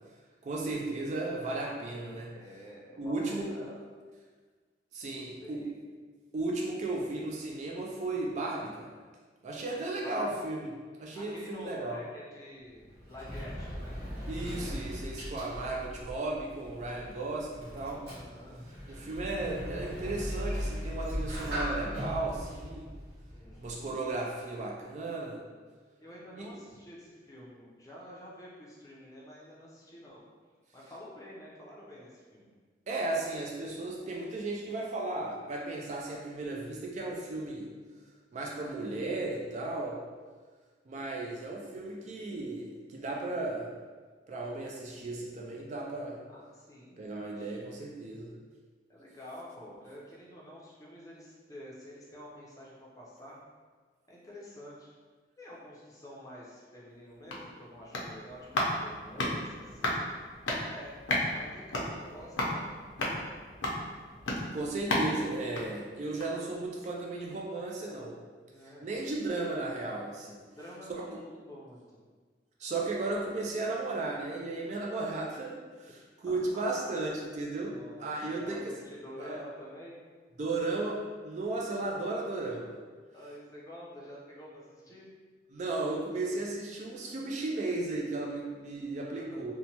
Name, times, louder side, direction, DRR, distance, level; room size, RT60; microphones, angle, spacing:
voice 1, 0.4-2.3 3.0-3.5 4.9-5.7 6.3-8.9 9.4-10.7 11.0-12.0 14.3-18.0 18.9-22.9 23.6-25.4 26.4-26.5 32.9-37.7 38.3-40.0 40.9-43.7 44.3-46.2 47.0-48.3 64.5-68.2 68.6-70.4 70.9-71.0 72.6-75.9 76.2-78.7 79.2-79.4 80.4-82.8 85.5-89.5, right 2 dB, 40° right, -2 dB, 0.3 m, -35 dB
voice 2, 2.3-3.8 5.1-5.7 10.0-10.4 11.1-14.0 15.6-16.2 17.9-18.6 23.3-23.6 26.0-30.2 30.7-32.5 46.3-47.6 48.9-53.4 54.1-54.9 55.4-60.0 60.6-61.0 61.3-62.7 68.4-68.9 70.5-71.8 76.3-76.6 77.7-78.0 78.4-78.6 79.0-80.0 83.1-85.1 88.9-89.5, equal, 20° left, -6 dB, 0.5 m, -48 dB
Sliding door, 12.6-24.0, equal, 60° right, 1.0 m, -39 dB
sound 1, 56.9-66.5 66.8-66.9, left 1 dB, 90° left, 0.5 m, -34 dB
2.9 x 2.1 x 2.8 m, 1.5 s
head